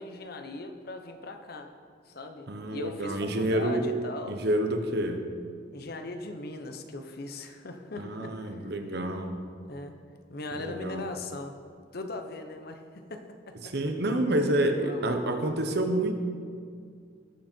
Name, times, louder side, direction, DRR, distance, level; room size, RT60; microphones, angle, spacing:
voice 1, 0.0-1.7 2.0-4.4 5.7-8.7 9.7-10.0 10.3-11.6 11.9-13.9 14.2-14.4 14.8-15.1, left 2 dB, 55° left, 6 dB, 0.9 m, -39 dB
voice 2, 2.5-3.9 4.3-5.3 8.0-9.5 10.6-11.0 13.7-16.1, right 1 dB, 60° right, 6 dB, 1.1 m, -28 dB
18.5 x 6.4 x 4.5 m, 2.2 s
head